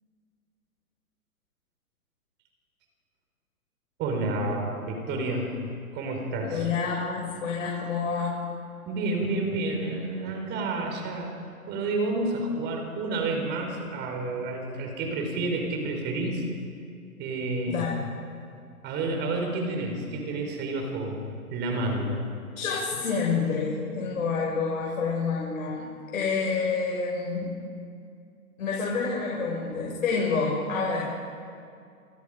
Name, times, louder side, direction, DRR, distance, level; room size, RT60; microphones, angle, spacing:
voice 1, 4.0-5.5 5.9-6.7 8.9-11.3 11.7-16.4 17.2-17.9 18.8-21.2 21.5-22.3, right 2 dB, 20° right, 2 dB, 4.9 m, -29 dB
voice 2, 6.4-8.3 17.7-18.1 22.6-25.8 26.1-27.5 28.6-31.3, left 5 dB, 60° left, -3 dB, 6.7 m, -28 dB
28.0 x 23.5 x 5.2 m, 2.3 s
hypercardioid pair, 135°, 45 cm